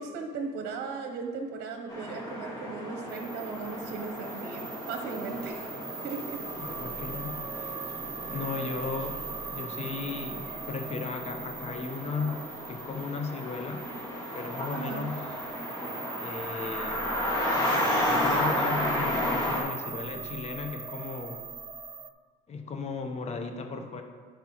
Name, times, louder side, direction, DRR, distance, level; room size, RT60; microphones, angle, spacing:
voice 1, 0.0-5.7 6.0-6.4 14.7-15.2, right 4 dB, 75° right, 4 dB, 0.9 m, -37 dB
sound 1, 1.9-19.6, left 1 dB, 20° left, 2.0 m, -33 dB
sound 2, 3.1-22.1, right 5 dB, 25° right, 0.5 m, -40 dB
voice 2, 6.6-7.8 8.3-9.2 9.5-13.9 14.3-15.3 16.2-17.1 18.1-21.4 22.5-24.0, left 4 dB, 40° left, 5 dB, 0.9 m, -36 dB
11.5 x 5.3 x 3.0 m, 1.5 s
cardioid pair, 110°, 17 cm